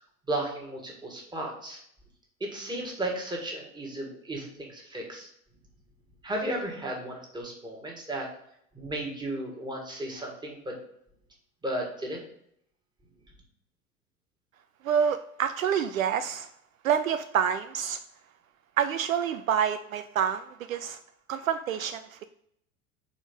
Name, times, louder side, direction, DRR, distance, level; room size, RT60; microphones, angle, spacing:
voice 1, 0.3-1.8 2.4-5.3 6.2-8.3 8.7-10.8 11.6-12.2, right 1 dB, 10° right, 0 dB, 1.8 m, -34 dB
voice 2, 14.8-16.5 16.8-18.0 18.8-21.0 21.3-22.2, right 8 dB, 70° right, 9 dB, 0.5 m, -27 dB
5.7 x 4.4 x 5.0 m, 0.71 s
figure-of-eight pair, 80°, 43 cm